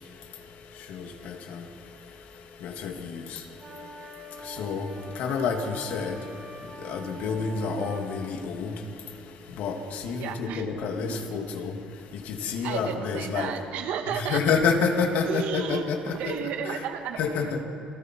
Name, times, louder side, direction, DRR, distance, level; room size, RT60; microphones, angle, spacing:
voice 1, 0.9-1.6 2.6-3.4 4.4-4.9 5.1-6.2 6.8-8.7 9.6-11.7 12.1-13.5 14.1-16.4 16.6-16.8 17.2-17.6, left 5 dB, 75° left, 3 dB, 2.6 m, -29 dB
sound 1, 3.6-8.0, right 1 dB, 20° right, 6.2 m, -44 dB
voice 2, 10.2-10.7 11.1-11.5 12.6-14.4 15.2-17.6, right 8 dB, 80° right, 5 dB, 2.0 m, -33 dB
29.0 x 23.5 x 4.7 m, 2.5 s
cardioid pair, 160°, 3 cm